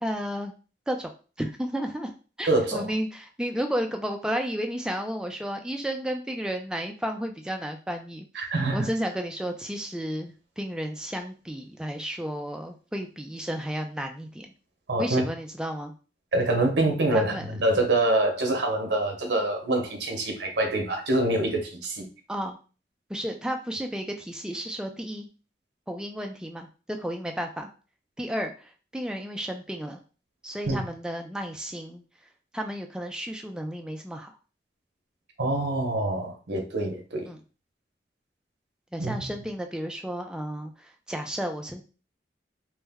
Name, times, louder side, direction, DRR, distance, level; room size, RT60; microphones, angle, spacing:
voice 1, 0.0-0.5 0.9-1.1 1.4-2.1 2.4-8.3 8.7-14.5 15.0-15.9 17.1-17.6 22.3-22.6 23.1-25.3 25.9-27.7 28.2-30.0 30.4-32.0 32.5-34.3 37.3-37.4 38.9-41.8, equal, 5° right, 3 dB, 0.4 m, -32 dB
voice 2, 2.4-2.9 8.3-8.9 14.9-15.2 16.3-22.1 30.7-30.8 35.4-37.3 39.0-39.3, right 2 dB, 85° right, 4 dB, 0.8 m, -25 dB
3.2 x 2.1 x 3.5 m, 0.35 s
head